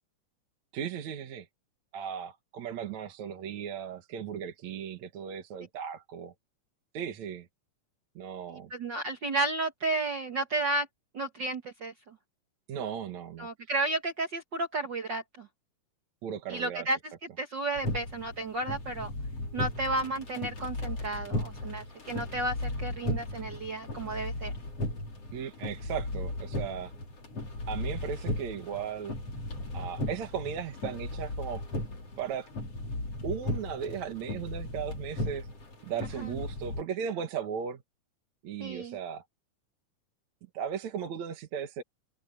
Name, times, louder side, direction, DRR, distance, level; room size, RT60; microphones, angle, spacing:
voice 1, 0.7-1.5 1.9-6.3 6.9-7.5 8.2-8.7 12.7-13.5 16.2-16.9 25.3-26.9 27.7-29.2 29.7-31.6 32.2-32.5 33.2-35.5 35.8-37.8 38.4-39.2 40.5-41.8, right 8 dB, 60° right, 2.9 m, -36 dB
voice 2, 8.5-10.9 11.1-11.9 13.4-15.5 16.5-17.0 17.4-19.1 19.5-24.5 36.2-36.3 38.6-39.0, right 2 dB, 45° right, 1.7 m, -32 dB
sound 1, 17.8-36.8, left 1 dB, 45° left, 6.2 m, -36 dB
omnidirectional pair, 3.7 m